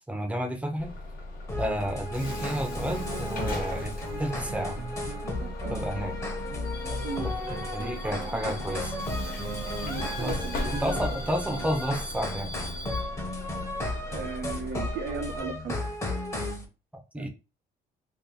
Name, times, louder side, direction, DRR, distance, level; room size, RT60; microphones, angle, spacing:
voice 1, 0.1-0.9 1.6-3.9 4.2-4.8 5.7-6.1 7.2-8.9 10.2-10.4 10.8-12.5 17.1-17.3, equal, 10° right, 0.8 m, -31 dB
Bus / Alarm, 0.8-15.4, left 2 dB, 55° left, 1.2 m, -38 dB
sound 1, 1.5-16.6, left 2 dB, 15° left, 1.0 m, -35 dB
sound 2, 2.3-11.7, right 8 dB, 45° right, 0.5 m, -42 dB
voice 2, 9.8-11.0 14.1-15.8 17.2-17.3, right 5 dB, 70° right, 0.8 m, -36 dB
2.8 x 2.5 x 3.8 m
cardioid pair, 110°, 17 cm